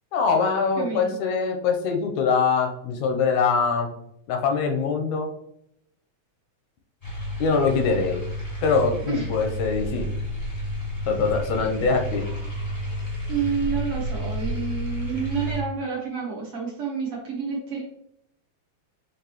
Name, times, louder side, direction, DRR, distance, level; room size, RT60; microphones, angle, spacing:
voice 1, 0.1-3.9 4.3-5.3 7.4-8.2 8.6-10.1 11.1-12.2, left 5 dB, 80° left, 4 dB, 1.9 m, -23 dB
voice 2, 0.8-1.1 9.1-9.3 13.3-17.8, right 6 dB, 60° right, -3 dB, 1.6 m, -29 dB
sound 1, 7.0-15.6, equal, 25° left, 0.8 m, -31 dB
6.0 x 3.0 x 2.9 m, 0.73 s
omnidirectional pair, 3.4 m